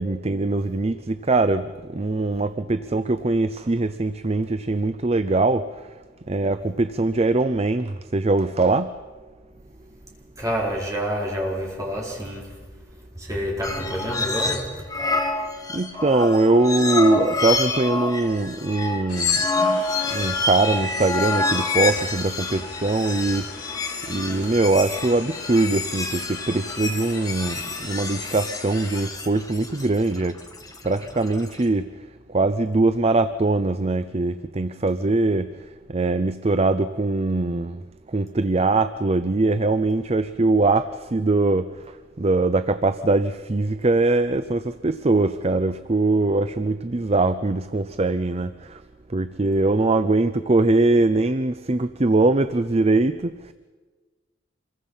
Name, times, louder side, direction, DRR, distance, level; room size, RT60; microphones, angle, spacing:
voice 1, 0.0-5.9 6.3-8.9 15.7-19.4 19.8-23.5 24.1-30.4 30.8-31.9 32.3-37.8 38.1-48.8 49.1-53.5, right 2 dB, 30° right, 0.6 m, -22 dB
voice 2, 10.4-12.7 13.1-14.9, equal, 15° right, 4.5 m, -28 dB
sound 1, 13.6-14.6 14.9-31.6, left 3 dB, 20° left, 2.1 m, -27 dB
sound 2, 19.1-29.1, left 5 dB, 75° left, 2.6 m, -41 dB
26.5 x 22.0 x 5.6 m
head